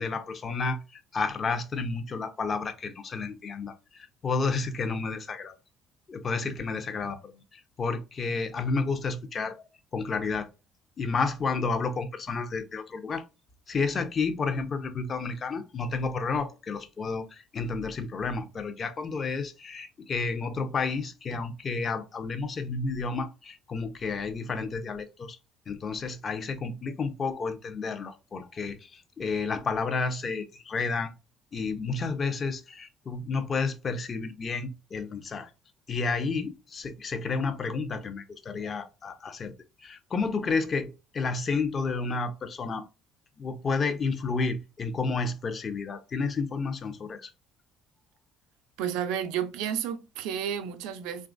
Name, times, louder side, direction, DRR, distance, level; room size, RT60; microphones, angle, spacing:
voice 1, 0.0-5.6 6.1-9.7 9.9-10.5 11.0-13.2 13.7-25.4 25.7-31.1 31.5-35.5 35.9-39.5 39.8-42.8 43.4-47.3, left 4 dB, 40° left, 0.6 m, -31 dB
voice 2, 48.8-51.3, right 9 dB, 80° right, 0.4 m, -31 dB
3.0 x 2.3 x 2.5 m
supercardioid pair, 70°, 0 cm